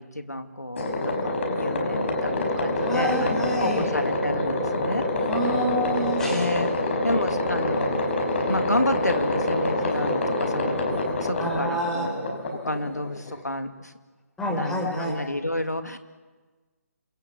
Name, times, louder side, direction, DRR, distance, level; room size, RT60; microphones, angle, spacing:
voice 1, 0.0-5.1 6.3-6.7 7.0-8.0 8.5-13.9 14.5-16.0, left 1 dB, 85° left, 8 dB, 2.4 m, -30 dB
sound 1, 0.8-13.4, left 1 dB, 45° left, 5.7 m, -26 dB
voice 2, 2.8-3.8 5.3-6.5 11.4-12.1 14.4-15.2, equal, 5° left, 0 dB, 5.0 m, -28 dB
27.0 x 22.0 x 8.3 m, 1.4 s
figure-of-eight pair, 145°, 9 cm